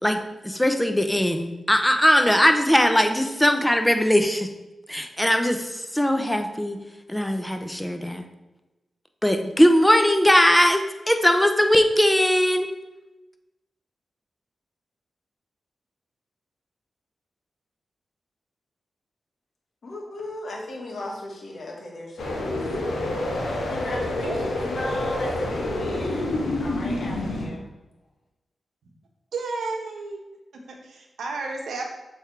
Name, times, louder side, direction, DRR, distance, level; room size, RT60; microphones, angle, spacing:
voice 1, 0.0-4.5 4.9-6.8 7.1-8.2 9.2-12.7, equal, 10° left, 6 dB, 0.8 m, -20 dB
voice 2, 19.8-22.6 23.7-24.4 24.6-26.3 26.6-27.7, left 1 dB, 70° left, -1 dB, 1.7 m, -36 dB
sound 1, 22.2-27.5, left 1 dB, 90° left, 1.4 m, -27 dB
voice 3, 29.3-30.2 30.5-31.8, right 3 dB, 85° right, 2 dB, 1.1 m, -32 dB
7.0 x 3.4 x 4.6 m, 1.0 s
cardioid pair, 50°, 0 cm